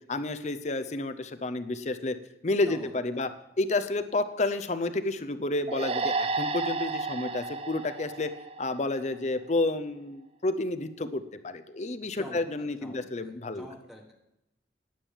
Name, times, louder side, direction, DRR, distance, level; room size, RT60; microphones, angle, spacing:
voice 1, 0.1-2.2 2.4-3.3 3.6-8.3 8.6-13.7, left 2 dB, 40° left, 10 dB, 0.6 m, -30 dB
voice 2, 2.7-3.2 12.2-14.1, equal, ahead, 0 dB, 1.3 m, -47 dB
sound 1, 5.7-9.1, right 3 dB, 35° right, 0.6 m, -32 dB
10.0 x 8.8 x 7.3 m, 0.89 s
head